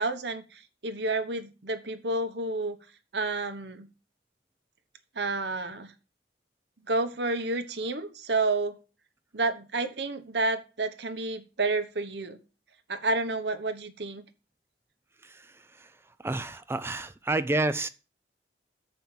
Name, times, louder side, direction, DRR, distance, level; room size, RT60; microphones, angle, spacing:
voice 1, 0.0-2.8 3.1-3.9 5.1-5.9 6.9-8.8 9.3-12.4 12.9-14.2, right 2 dB, 70° right, 1.1 m, -30 dB
voice 2, 15.2-15.9 16.2-17.9, right 2 dB, 15° right, 0.4 m, -30 dB
7.2 x 5.4 x 7.4 m
head